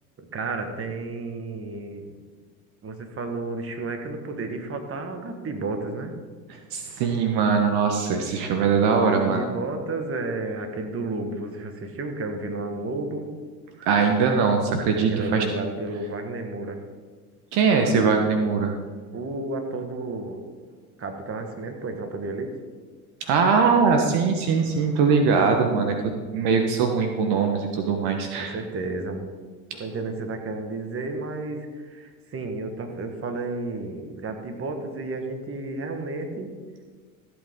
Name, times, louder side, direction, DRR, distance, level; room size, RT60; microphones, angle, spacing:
voice 1, 0.2-2.1 2.8-6.1 9.0-13.3 13.8-13.9 15.1-16.8 19.1-20.4 21.0-22.5 28.4-29.2 29.8-36.5, right 3 dB, 30° right, 5 dB, 1.8 m, -32 dB
voice 2, 6.5-9.4 13.8-15.4 17.5-18.7 23.2-25.9 26.3-28.5 29.7-29.8, right 5 dB, 60° right, 4 dB, 1.4 m, -21 dB
15.0 x 8.3 x 3.8 m, 1.5 s
hypercardioid pair, 80°, 43 cm